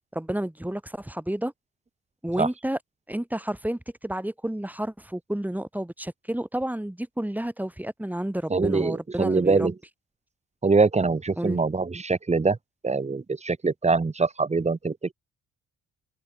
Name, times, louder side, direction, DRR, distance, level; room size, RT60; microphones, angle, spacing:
voice 1, 0.1-1.5 2.2-2.8 3.1-9.7 11.4-11.6, right 1 dB, 5° right, 4.5 m, -30 dB
voice 2, 8.5-9.7 10.6-12.6 12.8-15.1, right 4 dB, 20° right, 1.9 m, -23 dB
cardioid pair, 90°, 30 cm